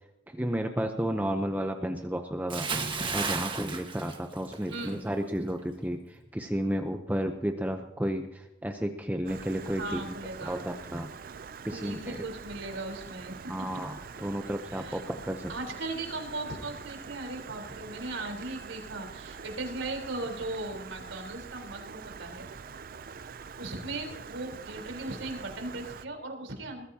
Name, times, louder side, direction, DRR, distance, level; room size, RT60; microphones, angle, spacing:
voice 1, 0.3-2.7 3.1-10.1 10.4-11.1 11.6-12.2 13.5-15.5, equal, 10° right, 5 dB, 0.7 m, -32 dB
Bathtub (filling or washing) / Splash splatter, 2.5-4.9 5.2-5.5, right 4 dB, 25° right, 1.5 m, -33 dB
voice 2, 4.7-5.0 9.8-10.6 11.7-13.5 14.7-15.0 15.5-22.5 23.6-26.8, right 2 dB, 85° right, 3 dB, 4.0 m, -38 dB
Stream, 9.3-26.1, right 6 dB, 45° right, 0.5 m, -45 dB
21.0 x 14.5 x 2.8 m, 0.92 s
head